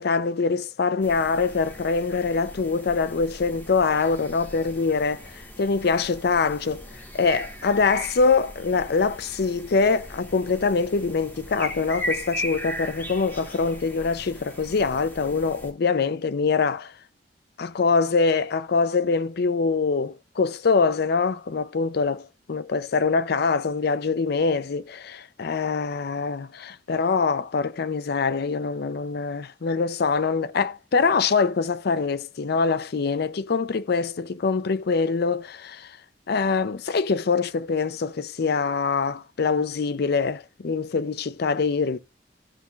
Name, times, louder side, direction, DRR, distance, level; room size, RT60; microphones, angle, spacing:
voice 1, 0.0-16.9 17.6-36.0 36.3-42.0, left 4 dB, 60° left, 0.5 m, -24 dB
sound 1, 1.0-15.7, equal, 10° left, 3.2 m, -38 dB
15.0 x 5.6 x 2.3 m
head